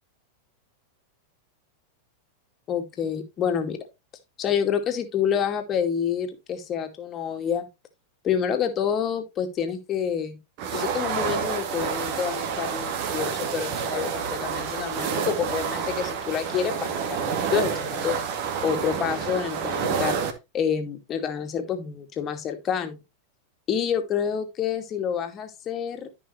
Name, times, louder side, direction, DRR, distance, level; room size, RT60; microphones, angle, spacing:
voice 1, 2.7-3.8 4.4-7.7 8.2-10.4 10.7-18.2 18.6-20.2 20.5-23.0 23.7-26.1, left 8 dB, 30° left, 2.3 m, -28 dB
sound 1, 10.6-20.3, right 6 dB, 45° right, 2.0 m, -28 dB
13.5 x 5.7 x 3.2 m
figure-of-eight pair, 90°, 0 cm